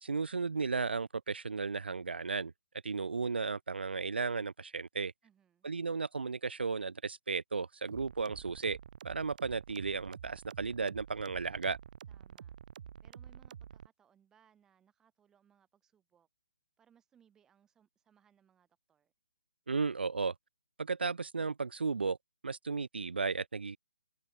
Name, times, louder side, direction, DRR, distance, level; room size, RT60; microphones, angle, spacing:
voice 1, 0.0-2.5 2.8-5.1 5.6-8.8 9.0-11.8 19.7-20.3 20.8-22.2 22.4-23.8, right 4 dB, 90° right, 0.6 m, -34 dB
voice 2, 5.2-5.7 12.1-12.5 13.0-16.3 16.8-19.1, right 8 dB, 10° right, 7.7 m, -69 dB
sound 1, 7.9-13.9, right 8 dB, 50° right, 0.6 m, -49 dB
hypercardioid pair, 155°, 5 cm